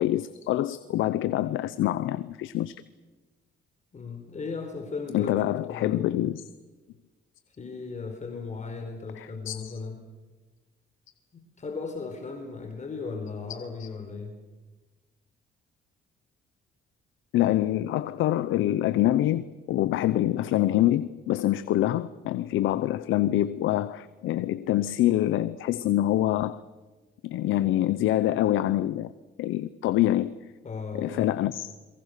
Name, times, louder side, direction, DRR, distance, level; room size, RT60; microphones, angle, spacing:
voice 1, 0.0-2.8 5.1-6.4 9.2-9.7 13.8-13.9 17.3-26.6 27.2-29.1 29.4-30.3 30.9-31.7, left 14 dB, 85° left, 14 dB, 0.8 m, -25 dB
voice 2, 3.9-5.3 5.7-6.2 7.6-10.0 11.6-14.4 30.6-31.4, left 4 dB, 35° left, 3 dB, 4.6 m, -36 dB
29.5 x 23.0 x 6.7 m, 1.3 s
cardioid pair, 90°, 20 cm